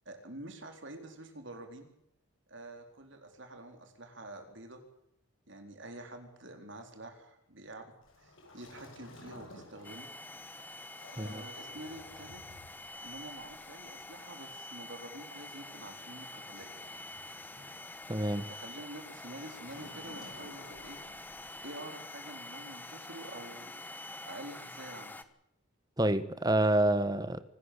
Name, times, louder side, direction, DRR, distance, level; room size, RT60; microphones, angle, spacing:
voice 1, 0.1-1.9 2.5-4.8 5.5-7.9 8.2-10.1 11.1-12.4 13.0-16.7 18.5-21.0 21.6-23.8 24.2-25.2, right 1 dB, 55° right, 6 dB, 4.1 m, -47 dB
Waves surf, 8.0-21.7, left 1 dB, 65° left, 7.1 m, -56 dB
sound 1, 9.8-25.2, left 2 dB, 10° left, 1.1 m, -46 dB
voice 2, 18.1-18.5 26.0-27.4, right 1 dB, 20° right, 13 dB, 1.3 m, -28 dB
25.5 x 14.0 x 8.5 m, 0.80 s
head